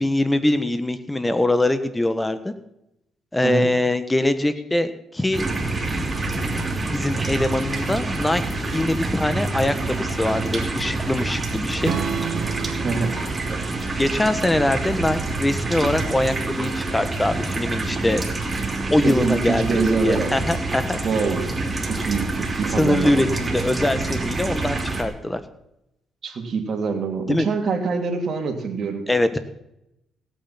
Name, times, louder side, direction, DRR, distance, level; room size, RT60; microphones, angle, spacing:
voice 1, 0.0-2.5 3.3-5.4 6.9-8.4 8.7-11.9 14.0-18.2 18.9-19.7 20.0-21.0 22.8-25.4 27.3-27.5 29.1-29.4, left 1 dB, 15° left, 11 dB, 1.4 m, -22 dB
sound 1, 5.3-25.0, right 3 dB, 20° right, 3.0 m, -27 dB
Strum, 11.8-16.0, right 7 dB, 70° right, 1.1 m, -33 dB
voice 2, 12.8-13.2 19.0-20.3 21.0-21.5 21.8-23.2 26.2-29.1, right 4 dB, 55° right, 4 dB, 3.0 m, -25 dB
17.0 x 9.2 x 5.9 m, 0.83 s
cardioid pair, 90°, 0 cm